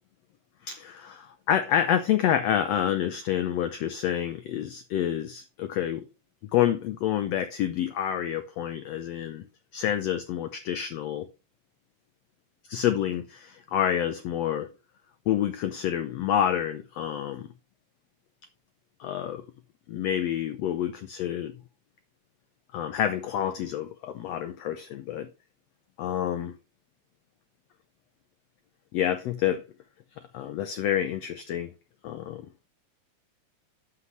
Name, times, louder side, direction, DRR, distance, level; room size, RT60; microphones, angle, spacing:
voice 1, 0.6-6.0 6.5-9.4 9.7-11.3 12.7-14.7 15.3-17.5 19.0-19.4 19.9-21.5 22.7-25.3 26.0-26.5 28.9-29.6 30.3-31.7 32.0-32.5, left 10 dB, 75° left, 1.6 m, -28 dB
9.8 x 7.7 x 3.2 m
omnidirectional pair, 3.7 m